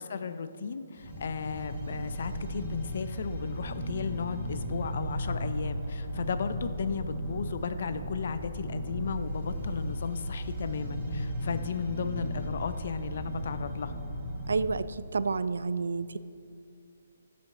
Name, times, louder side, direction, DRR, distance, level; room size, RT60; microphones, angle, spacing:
voice 1, 0.0-13.9, left 6 dB, 50° left, 11 dB, 0.4 m, -35 dB
sound 1, 1.0-14.6, equal, 15° right, 1.4 m, -35 dB
voice 2, 14.5-16.2, right 4 dB, 80° right, 15 dB, 0.3 m, -30 dB
11.5 x 5.1 x 3.7 m, 2.4 s
hypercardioid pair, 170°, 0 cm